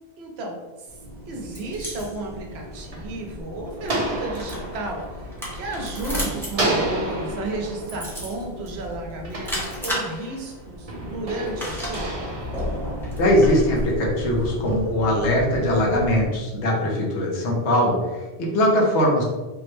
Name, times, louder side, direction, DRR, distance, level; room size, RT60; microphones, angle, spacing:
voice 1, 0.2-0.9 1.3-12.3, right 2 dB, 70° right, 1 dB, 0.9 m, -33 dB
sound 1, 0.9-16.3, equal, 5° left, 0.6 m, -33 dB
sound 2, 2.3-6.1 6.5-10.3 10.9-13.5, right 2 dB, 40° right, 0.6 m, -31 dB
voice 2, 13.1-19.2, left 1 dB, 85° left, -1 dB, 1.0 m, -21 dB
3.6 x 2.0 x 3.0 m, 1.2 s
omnidirectional pair, 1.2 m